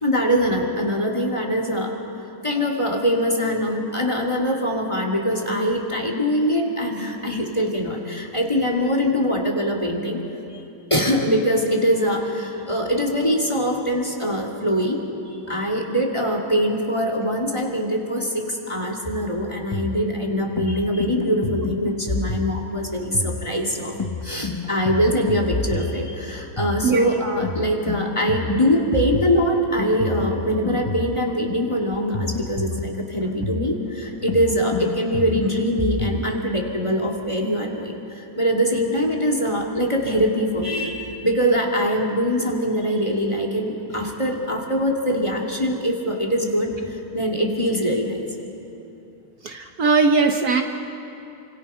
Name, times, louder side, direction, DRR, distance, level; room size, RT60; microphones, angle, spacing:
voice 1, 0.0-2.0 2.4-10.2 10.9-15.0 15.5-23.9 24.2-48.2, equal, 15° left, 1 dB, 2.5 m, -23 dB
sound 1, 19.0-36.3, left 3 dB, 40° left, 0.3 m, -29 dB
voice 2, 49.4-50.6, right 4 dB, 60° right, 5 dB, 1.4 m, -19 dB
29.5 x 25.5 x 5.7 m, 2.8 s
omnidirectional pair, 2.0 m